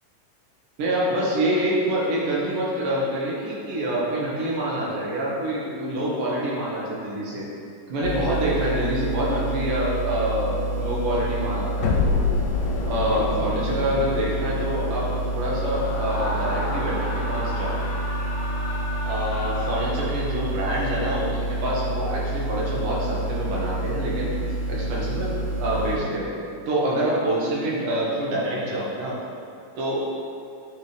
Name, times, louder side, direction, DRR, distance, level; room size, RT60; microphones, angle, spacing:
voice 1, 0.8-7.4 7.9-12.2 12.9-17.8 19.1-24.3 24.7-26.3 26.7-29.2 29.8-30.0, right 1 dB, 85° right, -5 dB, 2.9 m, -26 dB
sound 1, 8.0-26.0, right 1 dB, 70° right, 3.0 m, -28 dB
sound 2, 11.8-16.9, left 5 dB, 80° left, 2.0 m, -29 dB
Screaming, 15.6-20.5, left 1 dB, 55° left, 1.4 m, -33 dB
9.3 x 4.2 x 3.3 m, 2.5 s
omnidirectional pair, 3.7 m